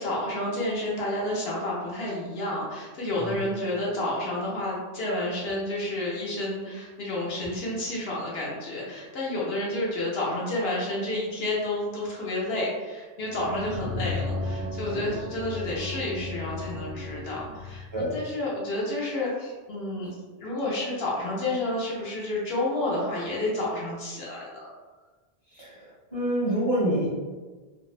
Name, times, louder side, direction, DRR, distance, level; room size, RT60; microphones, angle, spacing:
voice 1, 0.0-20.1 20.4-24.7, left 1 dB, 70° left, -5 dB, 0.8 m, -30 dB
sound 1, 13.2-17.9, left 3 dB, 75° right, 0.8 m, -35 dB
voice 2, 25.5-27.1, right 1 dB, 30° right, -9 dB, 0.8 m, -28 dB
2.6 x 2.0 x 2.4 m, 1.3 s
omnidirectional pair, 1.1 m